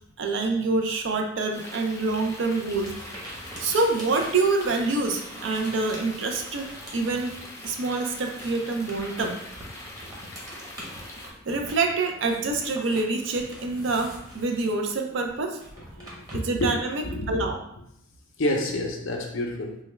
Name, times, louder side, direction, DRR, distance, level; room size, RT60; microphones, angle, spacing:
voice 1, 0.2-3.2 3.6-7.4 7.6-9.4 10.8-10.9 11.5-15.6 16.3-17.6, right 3 dB, 70° right, 3 dB, 0.5 m, -26 dB
sound 1, 1.5-11.3, left 1 dB, 15° left, 0.5 m, -42 dB
sound 2, 2.7-7.8 8.0-17.1, equal, 20° right, 0.9 m, -45 dB
voice 2, 16.0-16.7 17.0-17.5 18.4-19.8, left 1 dB, 80° left, 2 dB, 0.6 m, -29 dB
3.3 x 2.2 x 3.2 m, 0.76 s
head